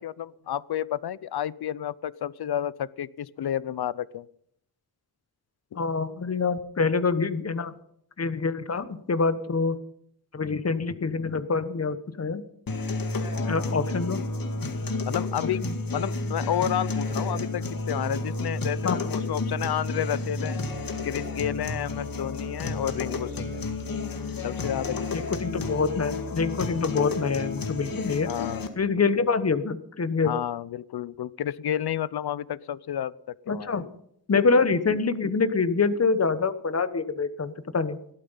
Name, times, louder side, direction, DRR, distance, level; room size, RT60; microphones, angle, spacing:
voice 1, 0.0-4.3 5.7-5.8 13.3-13.8 15.1-15.6 15.9-20.6 21.0-23.6 24.4-25.4 28.3-28.7 30.2-33.8, left 10 dB, 75° left, 20 dB, 0.7 m, -31 dB
voice 2, 5.7-7.7 8.2-9.8 10.3-12.4 13.5-14.2 15.4-15.7 18.8-19.0 25.1-28.3 28.8-30.3 33.5-33.9 34.3-38.0, left 4 dB, 40° left, 12 dB, 1.2 m, -26 dB
sound 1, 12.7-28.7, left 3 dB, 60° left, 2.0 m, -31 dB
16.5 x 12.5 x 5.7 m, 0.70 s
wide cardioid pair, 110°, 39 cm